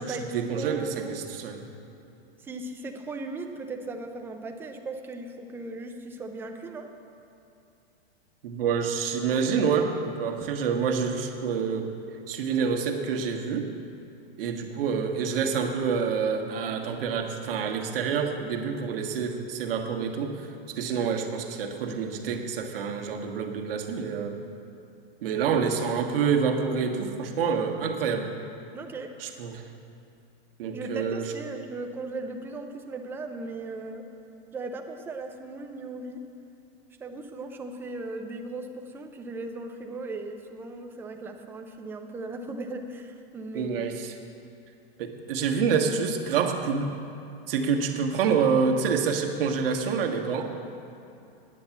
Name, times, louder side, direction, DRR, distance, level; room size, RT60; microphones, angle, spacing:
voice 1, 0.0-1.7 8.4-12.0 12.3-13.7 14.4-24.4 25.2-28.3 29.2-29.7 30.6-31.3 43.5-44.2 45.0-46.9 47.5-50.5, right 6 dB, 65° right, 2 dB, 1.5 m, -27 dB
voice 2, 0.5-1.1 2.4-6.9 28.7-29.1 30.7-34.0 34.5-36.2 37.0-43.8, right 2 dB, 5° right, 3 dB, 0.5 m, -37 dB
9.8 x 8.6 x 7.2 m, 2.8 s
supercardioid pair, 155°, 30 cm